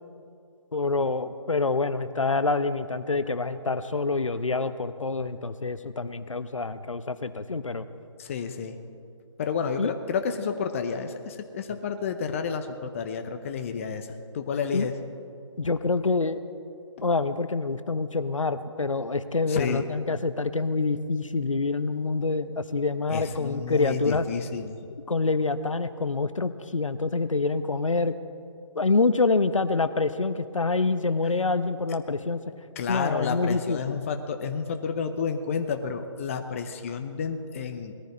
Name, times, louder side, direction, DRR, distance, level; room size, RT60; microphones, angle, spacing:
voice 1, 0.7-7.8 9.8-9.9 11.7-11.8 14.7-14.9 15.6-16.4 17.0-24.3 25.1-28.1 28.7-32.4 32.9-34.0, left 3 dB, 85° left, 12 dB, 0.8 m, -26 dB
voice 2, 8.2-8.8 9.4-14.1 14.3-15.0 19.5-19.8 23.1-24.8 32.8-37.9, left 6 dB, 25° left, 7 dB, 0.7 m, -30 dB
19.0 x 14.0 x 4.2 m, 2.4 s
figure-of-eight pair, 150°, 16 cm